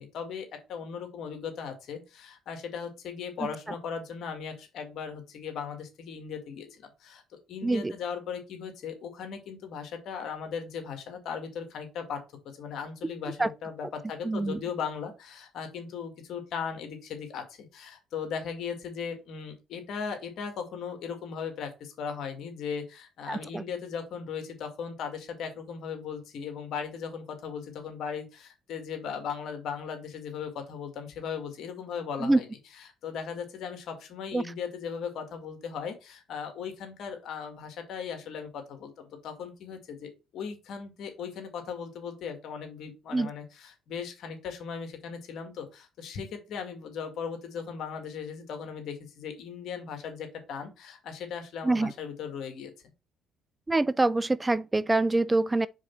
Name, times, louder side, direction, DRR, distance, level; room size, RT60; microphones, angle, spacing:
voice 1, 0.0-7.2 7.5-12.2 12.6-32.5 33.0-52.7, left 6 dB, 70° left, 1.9 m, -38 dB
voice 2, 7.6-7.9 13.4-13.5 14.2-14.6 23.3-23.6 32.2-32.4 34.3-34.4 43.1-43.3 51.6-51.9 53.7-55.7, right 2 dB, 15° right, 0.3 m, -25 dB
4.9 x 4.2 x 5.7 m
supercardioid pair, 75°, 0 cm